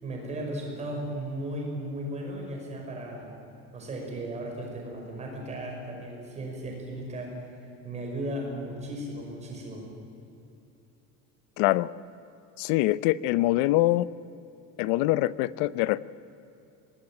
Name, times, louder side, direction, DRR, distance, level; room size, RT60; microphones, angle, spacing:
voice 1, 0.0-3.3 3.7-7.6 7.8-9.9, right 1 dB, 20° right, 0 dB, 5.7 m, -36 dB
voice 2, 11.6-11.9 12.6-14.1 14.8-16.0, left 17 dB, 75° left, 18 dB, 0.8 m, -24 dB
24.0 x 19.5 x 9.0 m, 2.9 s
cardioid pair, 175°, 32 cm